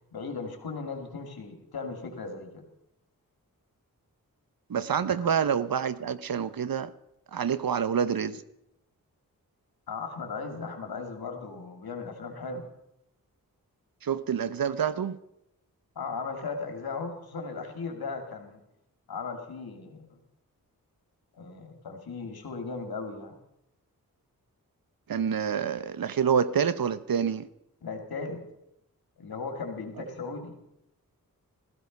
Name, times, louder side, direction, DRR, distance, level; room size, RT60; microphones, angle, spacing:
voice 1, 0.1-2.6 5.0-5.3 9.9-12.7 16.0-18.6 19.1-20.2 21.4-23.4 27.8-28.4 29.2-30.6, left 4 dB, 85° left, 2.7 m, -37 dB
voice 2, 4.7-6.9 7.3-8.4 14.0-15.2 25.1-27.5, right 7 dB, 70° right, 0.9 m, -27 dB
16.0 x 14.5 x 5.4 m
cardioid pair, 45°, 36 cm